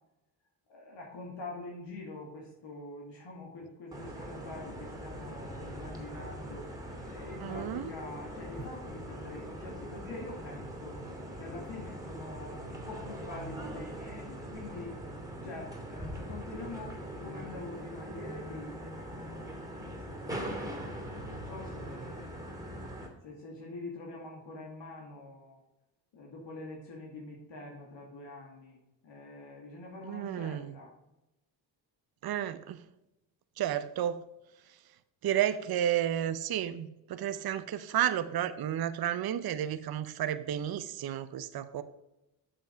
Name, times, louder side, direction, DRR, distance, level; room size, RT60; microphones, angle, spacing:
voice 1, 0.7-6.7 7.1-11.0 11.3-14.9 15.4-20.8 21.2-22.5 23.2-25.6 26.1-28.8 29.0-30.9, left 2 dB, 65° left, -2 dB, 2.3 m, -45 dB
sound 1, 3.9-23.1, equal, 5° right, 2.7 m, -42 dB
voice 2, 7.4-7.9 30.1-30.7 32.2-32.8 33.6-34.2 34.7-34.8 35.2-41.8, right 11 dB, 50° right, 11 dB, 0.7 m, -32 dB
7.5 x 6.9 x 5.1 m, 0.90 s
supercardioid pair, 60°, 47 cm